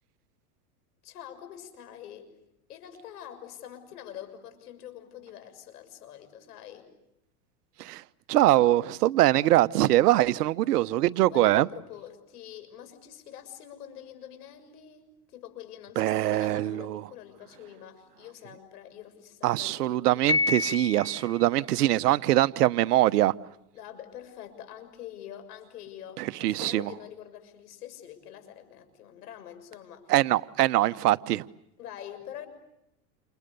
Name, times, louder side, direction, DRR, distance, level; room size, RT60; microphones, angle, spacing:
voice 1, 1.0-2.3 2.7-6.9 11.3-20.2 23.7-30.1 31.8-32.5, left 10 dB, 85° left, 6.8 m, -45 dB
voice 2, 8.3-11.7 16.0-17.0 19.4-23.3 26.2-26.9 30.1-31.4, right 15 dB, 85° right, 1.1 m, -23 dB
Piano, 20.3-21.4, left 3 dB, 10° left, 1.1 m, -28 dB
29.5 x 29.5 x 6.9 m
supercardioid pair, 120°, 45 cm